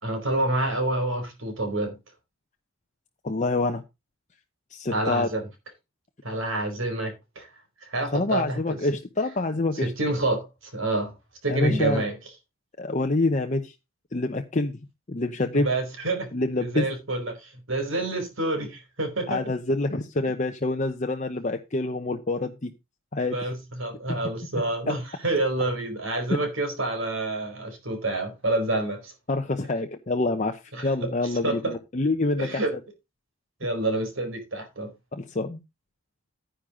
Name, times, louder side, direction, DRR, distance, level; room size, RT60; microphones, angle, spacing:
voice 1, 0.0-2.0 4.9-5.5 6.2-7.5 7.8-8.8 9.7-11.1 11.4-12.2 15.5-16.3 16.6-19.4 23.3-29.1 30.7-31.1 31.4-31.8 32.4-32.7 33.6-34.9, right 2 dB, 65° right, 4.7 m, -28 dB
voice 2, 3.2-3.8 4.7-5.3 7.9-9.9 11.5-12.0 12.8-13.7 14.1-14.8 15.1-15.7 16.3-16.9 19.3-22.7 23.1-23.4 24.1-24.2 26.3-26.4 29.3-32.8 35.1-35.6, left 2 dB, 35° left, 0.8 m, -26 dB
10.0 x 9.9 x 3.7 m
head